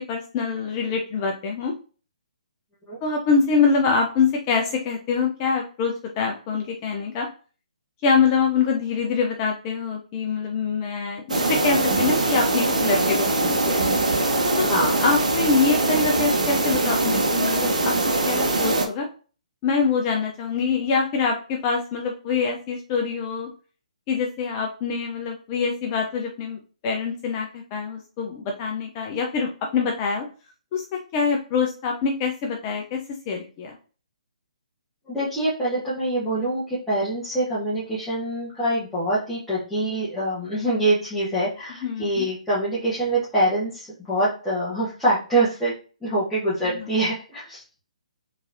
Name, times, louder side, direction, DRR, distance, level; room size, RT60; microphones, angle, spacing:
voice 1, 0.0-1.7 3.0-7.3 8.0-13.9 14.4-14.7 15.0-17.9 18.3-19.1 19.6-23.5 24.1-30.3 30.7-30.8 31.1-33.8 41.8-42.3, left 5 dB, 25° left, 1 dB, 0.5 m, -25 dB
sound 1, 11.3-18.9, right 2 dB, 65° right, 0.8 m, -22 dB
voice 2, 35.1-45.7 46.0-47.6, right 1 dB, 5° left, -12 dB, 1.2 m, -25 dB
3.7 x 3.0 x 2.6 m, 0.37 s
figure-of-eight pair, 135°, 4 cm